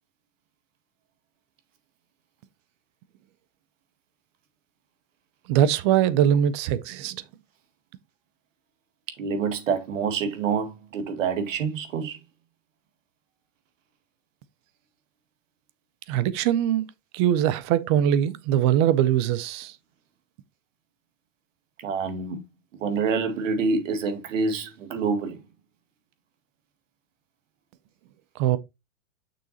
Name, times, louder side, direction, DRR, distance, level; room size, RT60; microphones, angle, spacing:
voice 1, 5.5-7.2 16.1-16.9 17.1-19.8 28.4-28.6, right 10 dB, 25° right, 0.4 m, -22 dB
voice 2, 9.2-12.2 21.8-22.4 22.8-25.4, right 5 dB, 75° right, 2.0 m, -27 dB
6.8 x 6.3 x 2.9 m
hypercardioid pair, 140°, 39 cm